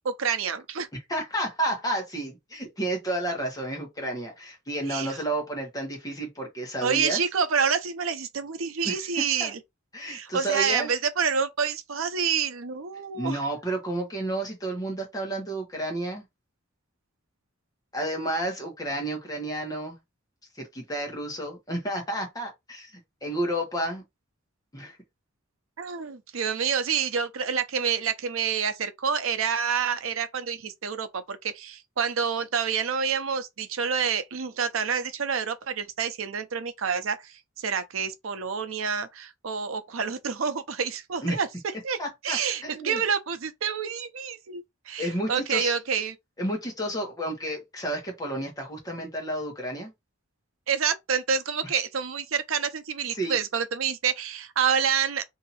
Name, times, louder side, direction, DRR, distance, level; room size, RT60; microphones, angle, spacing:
voice 1, 0.0-0.9 4.9-5.2 6.8-9.6 10.1-13.4 25.8-41.5 41.8-42.0 42.2-46.1 50.7-55.2, right 6 dB, 90° right, 0.6 m, -28 dB
voice 2, 1.1-7.2 8.8-9.5 9.9-10.9 13.1-16.2 17.9-20.0 20.6-24.0 24.7-25.0 41.2-41.4 42.0-43.0 45.0-45.7 46.4-49.9 53.1-53.4, right 1 dB, 20° left, 1.3 m, -31 dB
2.8 x 2.7 x 4.2 m
head